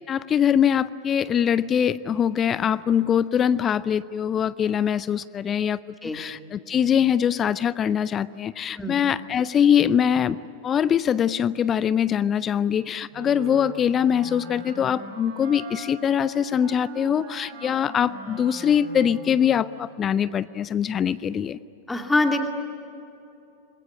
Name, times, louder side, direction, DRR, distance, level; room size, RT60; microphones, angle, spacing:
voice 1, 0.1-5.8 6.1-10.4 10.6-21.6, left 8 dB, 25° left, 18 dB, 0.5 m, -23 dB
Wind instrument woodwind instrument, 13.1-19.8, right 4 dB, 55° right, 4.7 m, -41 dB
voice 2, 21.9-22.5, left 2 dB, 10° left, 4 dB, 2.5 m, -23 dB
27.0 x 21.5 x 9.8 m, 2.8 s
figure-of-eight pair, 90°, 0 cm